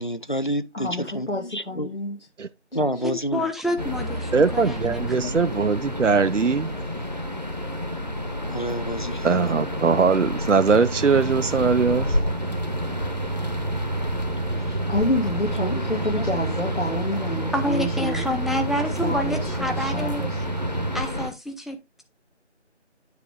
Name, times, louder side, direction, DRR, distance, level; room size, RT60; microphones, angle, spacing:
voice 1, 0.0-1.9 2.7-3.4 5.1-5.4 8.5-9.3 14.6-14.8 15.5-15.9 16.2-16.4, equal, 45° left, 0.6 m, -29 dB
voice 2, 0.7-2.2 14.9-18.2 19.0-20.3, left 1 dB, 75° left, 2.4 m, -28 dB
voice 3, 3.0-5.4 17.5-20.2 20.9-22.0, left 1 dB, ahead, 0.6 m, -28 dB
sound 1, 3.8-21.3, left 1 dB, 35° right, 0.9 m, -30 dB
voice 4, 4.3-6.7 9.2-12.2, right 5 dB, 85° right, 0.7 m, -21 dB
Microwave oven, 10.7-21.0, right 4 dB, 65° right, 1.1 m, -31 dB
9.6 x 3.5 x 4.8 m
figure-of-eight pair, 175°, 36 cm